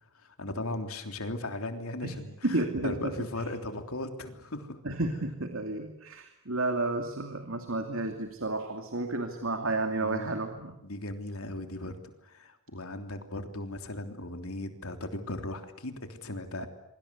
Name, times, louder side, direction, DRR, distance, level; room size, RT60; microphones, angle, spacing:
voice 1, 0.1-4.8 10.0-10.3 10.8-16.7, left 2 dB, 85° left, 6 dB, 3.4 m, -37 dB
voice 2, 2.4-3.1 4.8-10.8 16.6-16.7, right 2 dB, 70° right, 6 dB, 2.6 m, -31 dB
27.5 x 24.5 x 8.4 m, 0.84 s
head